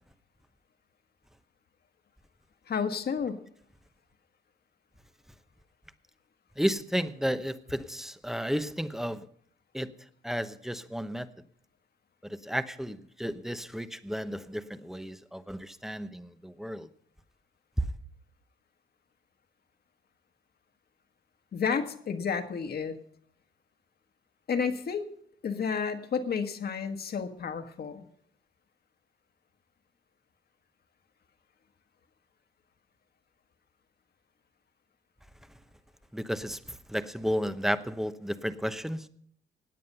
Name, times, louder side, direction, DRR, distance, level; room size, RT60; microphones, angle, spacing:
voice 1, 2.7-3.4 21.5-23.0 24.5-25.1 25.4-28.0, left 6 dB, 50° left, 1.6 m, -31 dB
voice 2, 6.6-9.3 9.7-9.9 10.2-11.3 12.2-16.9 36.1-39.1, equal, ahead, 0.9 m, -33 dB
17.0 x 9.4 x 5.6 m
cardioid pair, 90°, 20 cm